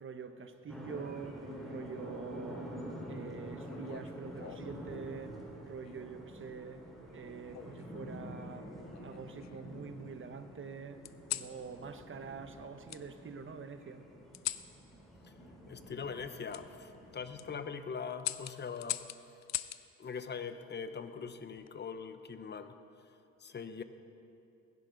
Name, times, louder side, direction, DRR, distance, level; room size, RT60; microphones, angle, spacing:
voice 1, 0.0-6.8 7.1-8.7 9.0-11.0 11.3-14.0, right 5 dB, 40° right, 1.1 m, -45 dB
sound 1, 0.7-17.6, equal, ahead, 3.5 m, -48 dB
sound 2, 3.7-4.8 5.8-6.2 7.5-8.3 8.9-9.8 11.0-11.5 12.9-13.0 14.3-14.7 16.5-16.6 17.2-17.5 18.2-19.8 21.3-21.7, left 13 dB, 65° left, 0.5 m, -41 dB
voice 2, 15.7-19.0 20.0-22.7 23.4-23.8, left 6 dB, 35° left, 0.9 m, -42 dB
20.5 x 10.5 x 4.0 m
cardioid pair, 90°, 30 cm